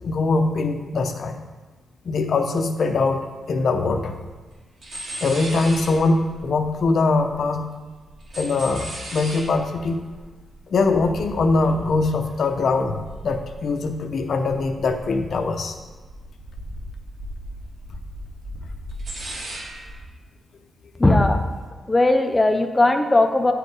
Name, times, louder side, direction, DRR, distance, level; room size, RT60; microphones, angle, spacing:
voice 1, 0.0-1.4 2.0-3.2 3.5-4.2 5.2-7.7 8.4-10.0 10.7-15.8, left 3 dB, 60° left, 6 dB, 0.7 m, -22 dB
sound 1, 4.3-4.6 4.8-7.6 7.9-14.2 14.4-15.4 15.7-20.0, right 1 dB, 50° right, 2.2 m, -37 dB
voice 2, 21.0-21.5 21.9-23.5, left 2 dB, 15° left, 5 dB, 0.4 m, -18 dB
9.5 x 4.9 x 4.7 m, 1.3 s
wide cardioid pair, 120°, 0 cm